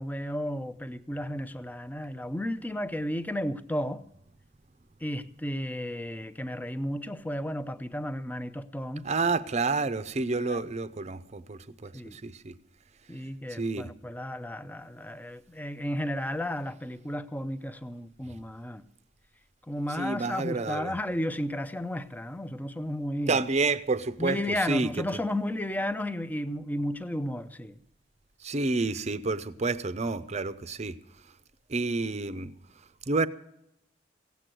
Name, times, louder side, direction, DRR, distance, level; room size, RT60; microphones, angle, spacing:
voice 1, 0.0-4.0 5.0-9.1 10.4-10.6 11.9-12.2 13.1-18.8 19.7-23.4 24.2-27.8, left 1 dB, 10° left, 0.6 m, -33 dB
voice 2, 9.0-12.5 13.5-13.9 19.9-20.9 23.3-24.9 28.4-30.9 31.7-32.5 33.1-33.3, right 3 dB, 40° right, 0.7 m, -29 dB
16.5 x 8.3 x 7.7 m
head